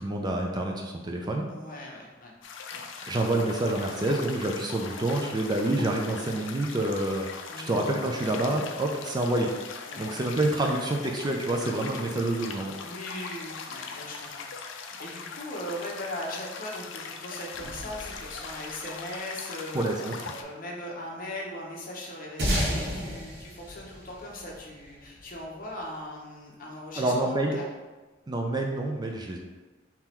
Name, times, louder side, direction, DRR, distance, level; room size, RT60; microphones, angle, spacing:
voice 1, 0.0-1.5 3.1-7.3 7.7-9.5 10.0-12.7 19.7-20.3 27.0-27.6 28.3-29.4, right 1 dB, 20° right, 1 dB, 0.4 m, -27 dB
voice 2, 1.5-2.3 2.7-2.8 7.5-7.8 9.9-10.1 12.8-14.5 15.0-19.9 20.3-27.7, left 1 dB, 45° left, -2 dB, 0.9 m, -39 dB
sound 1, 2.4-20.4, left 5 dB, 75° left, 0.4 m, -41 dB
sound 2, 17.5-19.2, equal, 80° right, 0.8 m, -46 dB
sound 3, 22.4-25.2, equal, 60° right, 1.1 m, -30 dB
3.7 x 2.9 x 4.3 m, 1.2 s
head